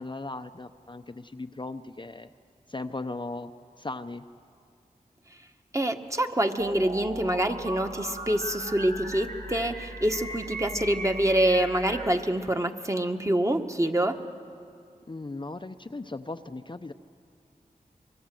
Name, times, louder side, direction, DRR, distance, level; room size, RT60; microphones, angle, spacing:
voice 1, 0.0-2.3 2.7-3.5 3.8-4.2 15.1-16.9, left 2 dB, 35° left, 8 dB, 0.7 m, -37 dB
voice 2, 5.7-14.2, right 1 dB, 20° right, 5 dB, 1.5 m, -26 dB
sound 1, 6.6-12.1, right 1 dB, 85° right, 3.6 m, -38 dB
24.5 x 23.5 x 7.7 m, 2.3 s
wide cardioid pair, 55°, 15 cm